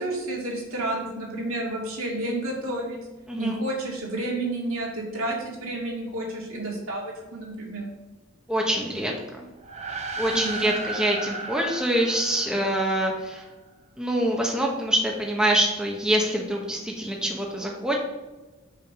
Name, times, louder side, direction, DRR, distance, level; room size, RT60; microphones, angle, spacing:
voice 1, 0.0-3.0 3.4-7.8 10.3-10.7, right 1 dB, 70° right, -2 dB, 2.4 m, -30 dB
voice 2, 3.3-3.6 8.5-9.5 10.2-13.4 14.0-18.0, right 1 dB, 5° right, -1 dB, 0.8 m, -25 dB
sound 1, 9.6-13.3, right 3 dB, 30° right, 0.7 m, -35 dB
5.7 x 5.0 x 6.6 m, 1.1 s
head